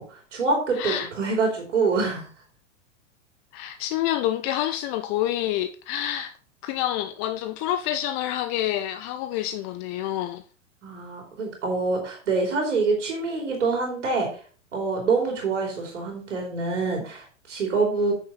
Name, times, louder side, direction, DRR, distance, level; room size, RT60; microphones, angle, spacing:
voice 1, 0.0-2.3 10.8-14.4 14.7-18.1, right 4 dB, 65° right, 3.1 m, -26 dB
voice 2, 0.8-1.1 3.5-6.4 6.6-10.4, left 12 dB, 30° left, 0.5 m, -28 dB
8.9 x 6.5 x 3.9 m
figure-of-eight pair, 100°, 38 cm